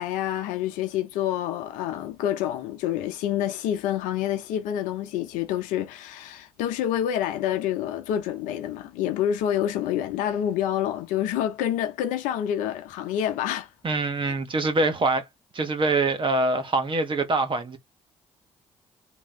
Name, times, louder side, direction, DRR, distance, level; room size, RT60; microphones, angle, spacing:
voice 1, 0.0-13.7 14.2-14.3, left 11 dB, 80° left, 0.8 m, -27 dB
voice 2, 13.8-15.3 15.5-17.8, right 2 dB, 40° right, 1.3 m, -24 dB
3.6 x 3.1 x 3.1 m
hypercardioid pair, 55°, 13 cm